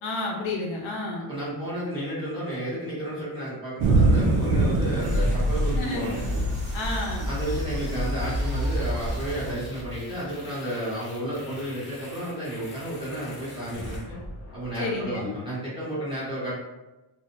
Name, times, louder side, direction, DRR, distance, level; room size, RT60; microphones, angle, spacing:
voice 1, 0.0-1.3 5.7-6.1 6.7-7.3 14.8-15.3, left 2 dB, 75° left, -1 dB, 0.8 m, -30 dB
voice 2, 1.3-6.2 7.2-14.2 14.5-16.5, right 1 dB, 10° right, -10 dB, 1.1 m, -32 dB
Thunder / Rain, 3.8-9.5, right 2 dB, 85° right, 0.5 m, -26 dB
sound 1, 5.0-15.0, left 1 dB, 25° left, 0.5 m, -31 dB
2.4 x 2.0 x 2.9 m, 1.0 s
cardioid pair, 140°, 48 cm